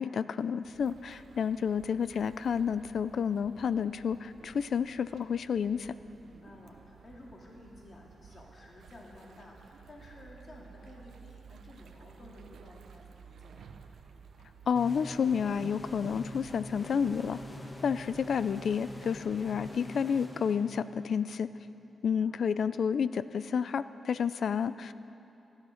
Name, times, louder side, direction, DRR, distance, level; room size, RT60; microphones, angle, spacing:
voice 1, 0.0-5.9 14.7-17.4 17.8-21.5 22.0-24.9, left 7 dB, 70° left, 15 dB, 0.4 m, -30 dB
sound 1, 0.6-19.8, right 6 dB, 80° right, 0.8 m, -54 dB
voice 2, 6.2-13.8 22.0-22.9, left 2 dB, 45° left, -2 dB, 2.4 m, -53 dB
sound 2, 14.8-21.2, left 1 dB, 25° left, 1.4 m, -45 dB
15.0 x 11.0 x 6.5 m, 2.9 s
cardioid pair, 85°, 0 cm